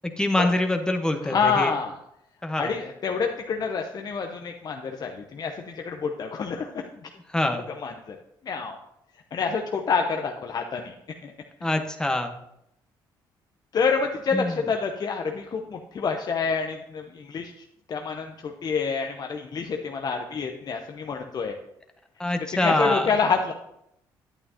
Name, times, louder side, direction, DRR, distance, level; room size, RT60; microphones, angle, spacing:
voice 1, 0.2-1.7 2.4-2.7 7.3-7.7 11.6-12.4 14.3-14.7 22.2-23.1, left 1 dB, 10° left, 5 dB, 1.0 m, -25 dB
voice 2, 1.2-1.9 2.6-5.5 5.8-6.8 7.8-8.1 8.4-8.8 9.3-10.9 11.2-11.3 13.7-17.5 17.9-21.6 22.5-23.5, left 5 dB, 50° left, 3 dB, 0.7 m, -27 dB
8.9 x 8.7 x 2.8 m, 0.79 s
supercardioid pair, 70°, 9 cm